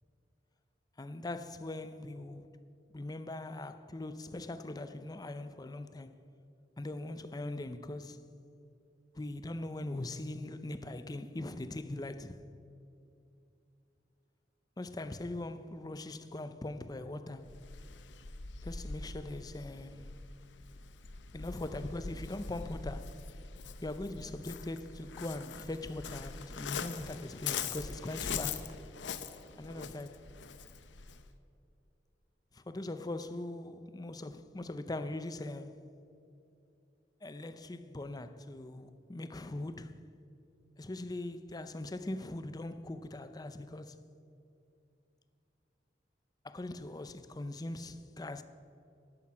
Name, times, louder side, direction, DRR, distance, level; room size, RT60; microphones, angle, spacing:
voice 1, 1.0-2.5 2.9-6.2 6.8-8.2 9.1-12.4 14.8-17.5 18.6-20.1 21.3-23.3 23.8-28.8 29.6-30.2 32.5-35.9 37.2-40.0 40.8-44.0 46.4-48.4, left 2 dB, 20° left, 0.5 m, -41 dB
Waves surf, 17.4-31.3, left 6 dB, 80° left, 0.7 m, -43 dB
12.0 x 12.0 x 5.8 m
head